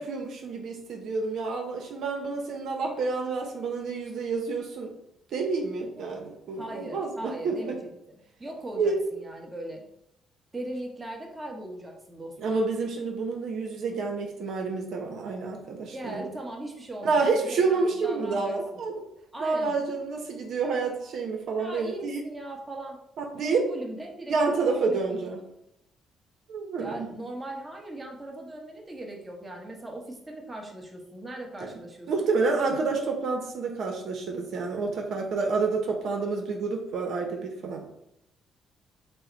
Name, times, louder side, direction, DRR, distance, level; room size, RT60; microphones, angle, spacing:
voice 1, 0.0-4.9 5.3-7.8 8.8-9.0 12.4-16.3 17.0-18.9 19.4-22.2 23.2-23.7 24.3-25.4 26.5-27.1 31.6-31.7 32.1-37.9, right 4 dB, 70° right, 2 dB, 0.8 m, -29 dB
voice 2, 6.6-9.8 10.5-12.6 15.9-18.6 19.3-19.7 21.6-23.0 23.3-25.3 26.8-32.3, right 1 dB, 20° right, 0 dB, 1.1 m, -39 dB
5.6 x 2.1 x 4.0 m, 0.81 s
cardioid pair, 90°, 0 cm